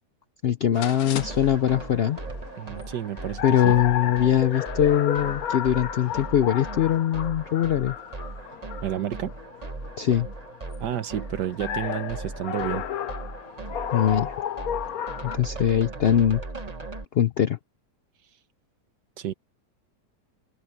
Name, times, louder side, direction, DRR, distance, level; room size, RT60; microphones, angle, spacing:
voice 1, 0.4-2.2 3.4-7.9 10.0-10.3 13.9-14.3 15.2-16.4 17.1-17.6, left 10 dB, 80° left, 0.5 m, -22 dB
sound 1, 0.7-15.4, left 10 dB, 65° left, 1.2 m, -34 dB
sound 2, 1.2-17.0, right 3 dB, 25° right, 1.5 m, -38 dB
voice 2, 2.6-3.8 8.8-9.3 10.8-12.8 19.2-19.3, right 11 dB, 85° right, 1.5 m, -30 dB
open air
omnidirectional pair, 1.8 m